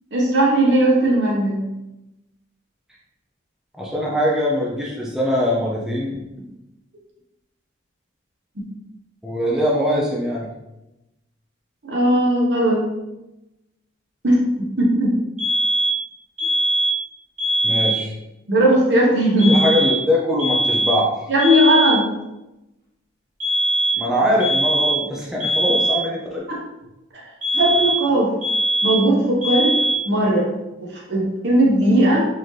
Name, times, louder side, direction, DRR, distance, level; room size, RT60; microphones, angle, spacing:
voice 1, 0.1-1.6 8.6-8.7 11.8-12.9 14.2-15.1 18.5-19.6 21.3-22.1 26.5-26.6 27.5-28.3 28.8-29.8 30.0-30.5 31.1-32.2, right 1 dB, 65° right, -3 dB, 1.1 m, -17 dB
voice 2, 3.8-6.2 9.2-10.5 17.6-18.1 19.5-21.2 23.9-26.4, left 1 dB, 5° right, -5 dB, 0.5 m, -22 dB
sound 1, 15.4-16.0 16.4-17.1 17.4-18.0 19.4-20.1 20.4-21.1 21.4-22.1 23.4-24.1 24.4-25.1 25.4-26.1 27.4-28.1 28.4-29.1 29.4-30.1, right 1 dB, 40° right, 1.4 m, -21 dB
4.1 x 2.8 x 3.2 m, 0.95 s
head